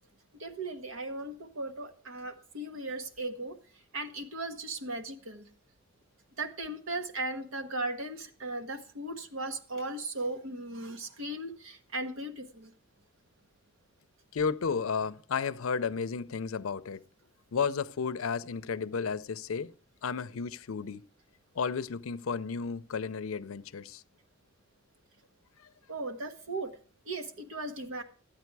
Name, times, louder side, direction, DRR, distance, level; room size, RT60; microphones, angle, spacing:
voice 1, 0.4-3.5 3.9-5.5 6.4-12.7 25.9-26.7 27.0-28.0, right 2 dB, 90° right, 1.2 m, -37 dB
voice 2, 14.3-17.0 17.5-19.7 20.0-21.1 21.6-24.0, left 5 dB, 85° left, 0.5 m, -33 dB
12.5 x 8.8 x 4.7 m
head